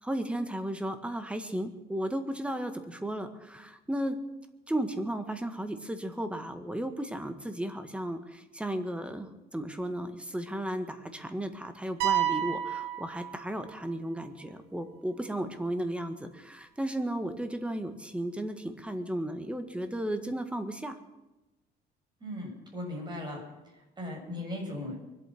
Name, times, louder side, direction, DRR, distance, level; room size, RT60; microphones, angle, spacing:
voice 1, 0.0-4.2 4.7-21.0, right 1 dB, 5° right, 8 dB, 1.7 m, -34 dB
sound 1, 12.0-13.9, right 11 dB, 90° right, 1.5 m, -30 dB
voice 2, 22.2-23.4 23.7-25.0, left 1 dB, 25° right, 0 dB, 6.9 m, -38 dB
23.5 x 8.7 x 6.1 m, 1.0 s
cardioid pair, 110°, 17 cm